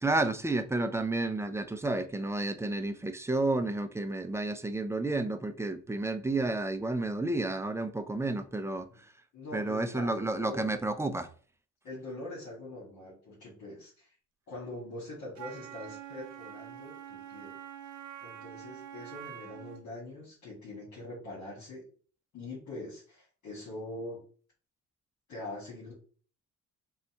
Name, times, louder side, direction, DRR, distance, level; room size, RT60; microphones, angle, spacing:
voice 1, 0.0-8.9 9.5-11.3, right 2 dB, 10° right, 0.5 m, -31 dB
voice 2, 9.3-10.7 11.8-14.1 14.5-17.6 18.2-21.9 22.3-24.2 25.3-25.9, left 2 dB, 70° left, 2.0 m, -43 dB
Wind instrument woodwind instrument, 15.3-19.9, right 10 dB, 80° right, 0.8 m, -45 dB
4.0 x 2.3 x 4.3 m
cardioid pair, 90°, 30 cm